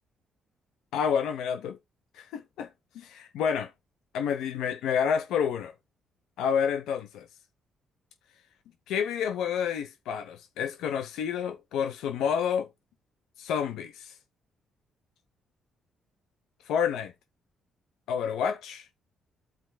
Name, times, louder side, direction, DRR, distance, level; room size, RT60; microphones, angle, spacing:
voice 1, 0.9-1.8 2.2-2.7 2.9-3.7 4.1-5.7 6.4-7.3 8.9-12.7 13.4-14.1 16.7-17.1 18.1-18.9, left 7 dB, 85° left, 0.8 m, -29 dB
13.5 x 4.5 x 2.2 m
cardioid pair, 90°, 0 cm